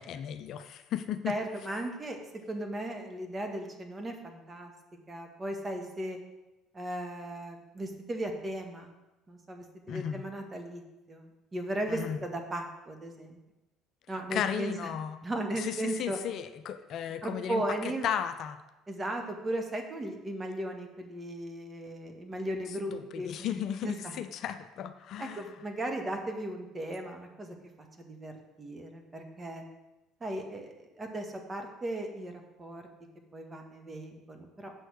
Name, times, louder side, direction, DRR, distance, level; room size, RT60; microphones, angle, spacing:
voice 1, 0.0-1.3 9.9-10.2 11.9-12.2 14.3-15.2 15.5-18.6 22.9-25.5, left 9 dB, 55° left, 10 dB, 0.5 m, -35 dB
voice 2, 1.3-2.2 2.5-4.7 5.1-6.2 6.7-8.9 9.3-10.8 11.1-13.4 14.1-14.9 15.2-16.2 17.2-18.1 18.9-23.5 23.8-24.1 25.2-27.5 28.0-28.3 28.6-29.6 30.2-32.8 33.3-34.7, right 1 dB, 25° right, 4 dB, 1.7 m, -36 dB
7.7 x 6.3 x 6.3 m, 1.0 s
figure-of-eight pair, 55°, 0 cm